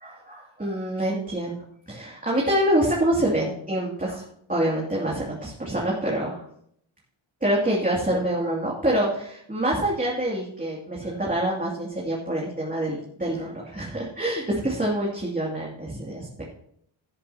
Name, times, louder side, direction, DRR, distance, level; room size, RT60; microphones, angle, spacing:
voice 1, 0.0-1.6 1.9-4.2 4.5-6.4 7.4-16.3, right 1 dB, 15° right, -5 dB, 2.5 m, -26 dB
17.0 x 9.8 x 2.9 m, 0.69 s
wide cardioid pair, 115°, 49 cm